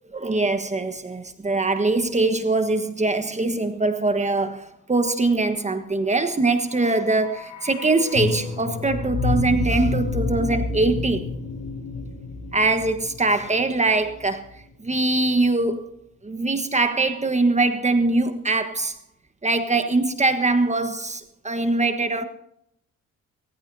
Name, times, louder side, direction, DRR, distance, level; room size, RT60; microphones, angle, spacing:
voice 1, 0.1-11.3 12.5-14.4 14.8-15.9 16.2-19.0 19.4-22.2, right 2 dB, 25° right, 1.4 m, -22 dB
sound 1, 6.5-14.6 14.8-14.9, left 3 dB, 90° left, 3.8 m, -29 dB
23.5 x 15.0 x 2.8 m
cardioid pair, 90°, 30 cm